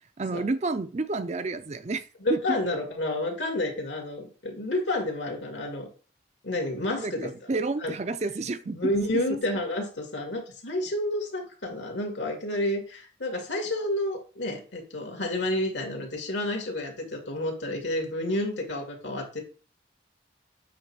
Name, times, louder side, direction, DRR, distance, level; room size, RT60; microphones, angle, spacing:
voice 1, 0.2-2.0 2.3-2.6 7.0-8.8, right 3 dB, 35° right, 0.5 m, -30 dB
voice 2, 2.2-5.9 6.4-7.3 7.8-8.0 8.7-19.4, left 1 dB, 75° left, 2.4 m, -30 dB
8.5 x 3.2 x 6.1 m
head